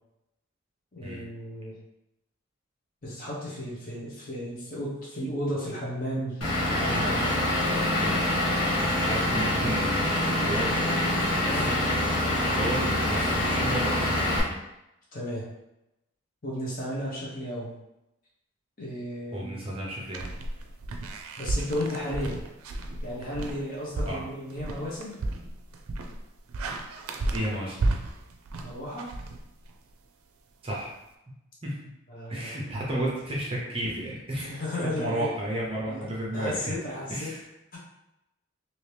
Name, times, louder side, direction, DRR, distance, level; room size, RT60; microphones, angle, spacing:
voice 1, 0.9-1.7 3.0-6.4 6.8-7.5 11.5-11.8 12.7-12.9 15.1-15.4 16.4-17.7 18.8-19.6 21.4-22.4 23.0-25.2 28.6-29.1 32.1-32.7 34.4-35.3 35.9-37.3 37.7-37.8, equal, 40° left, -5 dB, 0.9 m, -34 dB
Vehicle / Engine, 6.4-14.4, left 1 dB, 85° left, 1.3 m, -25 dB
voice 2, 7.8-8.3 8.8-11.1 11.4-11.7 12.4-14.6 19.3-20.3 24.1-24.2 27.2-27.8 30.6-30.9 31.6-31.8 32.3-36.7 37.1-37.4, right 1 dB, 25° right, -4 dB, 0.7 m, -33 dB
sound 1, 20.1-29.9, right 2 dB, 85° right, 0.4 m, -33 dB
2.8 x 2.8 x 3.3 m, 0.89 s
head